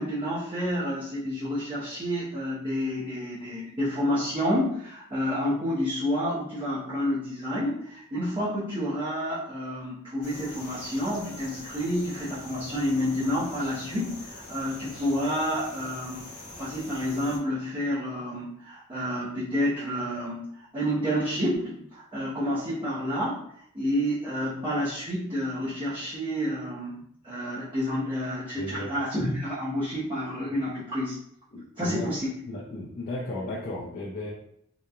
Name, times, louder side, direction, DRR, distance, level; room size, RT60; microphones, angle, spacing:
voice 1, 0.0-16.2 16.6-23.4 23.7-31.2 31.8-32.3, equal, 25° right, -10 dB, 0.6 m, -29 dB
sound 1, 10.2-17.4, left 2 dB, 90° left, 0.9 m, -43 dB
voice 2, 28.6-28.9 31.5-32.1 32.5-34.3, left 1 dB, 45° left, -5 dB, 0.5 m, -35 dB
2.8 x 2.1 x 2.3 m, 0.69 s
head